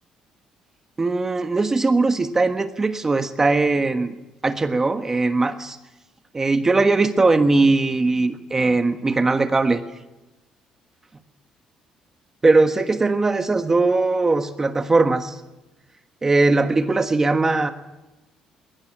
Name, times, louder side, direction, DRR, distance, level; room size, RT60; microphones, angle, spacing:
voice 1, 1.0-4.1 4.4-5.8 6.3-9.8 12.4-15.4 16.2-17.7, right 3 dB, 20° right, 8 dB, 1.4 m, -20 dB
21.5 x 17.5 x 9.9 m, 1.0 s
cardioid pair, 115°, 2 cm